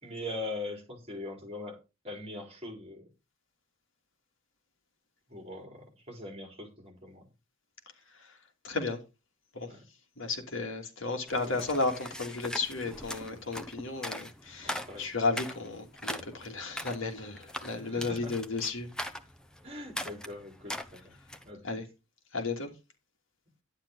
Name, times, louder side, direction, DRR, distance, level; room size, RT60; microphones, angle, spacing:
voice 1, 0.0-3.1 5.3-7.3 9.7-9.9 11.4-11.6 14.6-15.1 17.8-18.4 19.6-21.1 21.4-21.8, left 2 dB, 30° right, 4.5 m, -42 dB
voice 2, 8.6-9.0 9.5-9.7 10.2-18.9 21.6-21.8 22.3-22.7, left 3 dB, 70° left, 2.8 m, -33 dB
sound 1, 11.3-21.5, left 1 dB, 5° left, 1.0 m, -41 dB
11.5 x 9.8 x 4.0 m
head